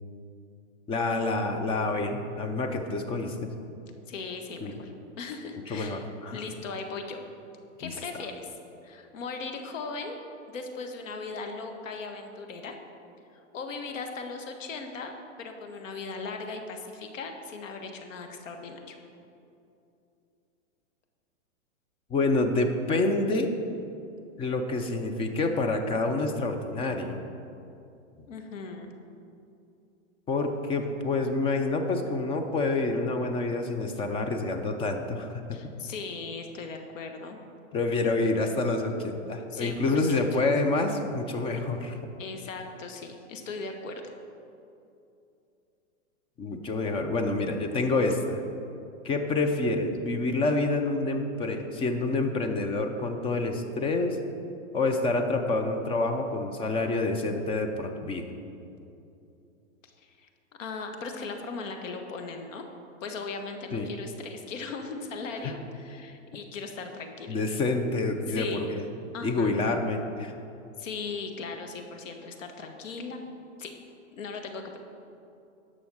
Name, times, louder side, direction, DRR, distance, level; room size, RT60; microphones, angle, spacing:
voice 1, 0.9-3.5 4.6-4.8 5.7-6.4 7.8-7.9 22.1-23.5 24.4-27.2 30.3-35.4 37.7-42.0 46.4-48.4 49.0-54.2 54.7-58.3 63.7-63.9 67.3-68.8 69.2-70.3, left 2 dB, 15° left, 5 dB, 0.6 m, -27 dB
voice 2, 4.1-6.0 6.3-7.2 7.8-8.5 8.8-10.2 10.5-12.8 13.3-15.1 15.4-19.0 28.3-28.9 35.5-37.4 39.5-40.4 42.2-44.0 59.8-60.3 60.6-62.7 63.0-67.4 68.3-68.7 69.1-69.5 70.8-73.2 73.6-73.7 74.1-74.8, left 4 dB, 75° left, 5 dB, 1.5 m, -38 dB
10.5 x 6.3 x 6.3 m, 2.7 s
hypercardioid pair, 140°, 39 cm